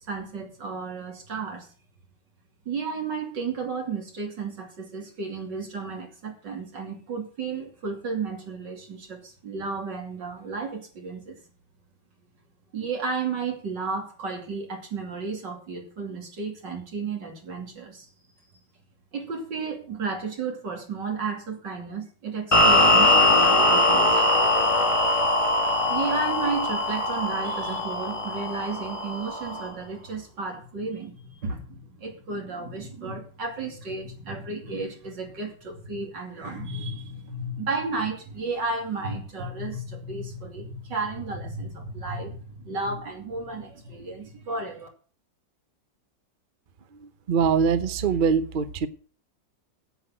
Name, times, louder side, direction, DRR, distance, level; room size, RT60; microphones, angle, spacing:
voice 1, 0.1-1.7 2.7-11.4 12.7-18.1 19.1-24.2 25.9-44.9, right 4 dB, 75° right, 3.4 m, -33 dB
sound 1, 22.5-29.7, left 1 dB, 20° left, 2.0 m, -21 dB
voice 2, 46.9-48.9, right 6 dB, 45° right, 0.6 m, -23 dB
9.6 x 8.3 x 7.7 m
omnidirectional pair, 1.9 m